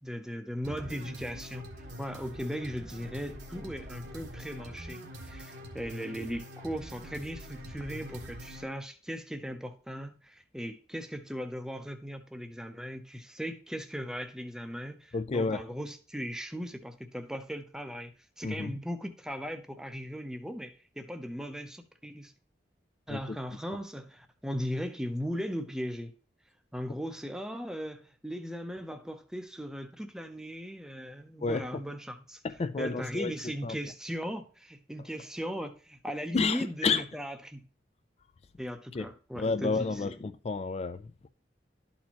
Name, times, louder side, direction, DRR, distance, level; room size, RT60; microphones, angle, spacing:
voice 1, 0.0-1.7 2.0-22.3 23.1-26.1 26.7-32.4 32.8-37.6 38.6-40.2, equal, 5° right, 0.6 m, -38 dB
sound 1, 0.6-8.6, equal, 70° right, 1.4 m, -44 dB
voice 2, 15.1-15.6 18.4-18.7 23.1-23.4 31.4-31.7 32.4-33.3 33.6-33.8 36.3-37.0 38.9-39.1 39.4-41.3, left 4 dB, 35° left, 0.3 m, -30 dB
12.0 x 4.3 x 2.9 m
head